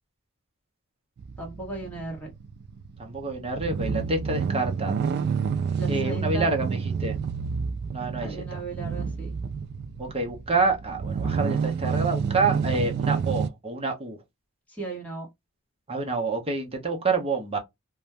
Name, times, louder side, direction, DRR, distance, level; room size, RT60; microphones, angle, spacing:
sound 1, 1.2-13.5, right 6 dB, 50° right, 0.3 m, -29 dB
voice 1, 1.4-2.3 5.8-6.5 8.2-9.3 14.7-15.3, right 2 dB, 5° left, 1.3 m, -36 dB
voice 2, 3.0-5.1 5.9-7.2 7.9-8.6 10.0-14.2 15.9-17.6, right 3 dB, 25° right, 0.8 m, -28 dB
2.6 x 2.2 x 3.2 m
head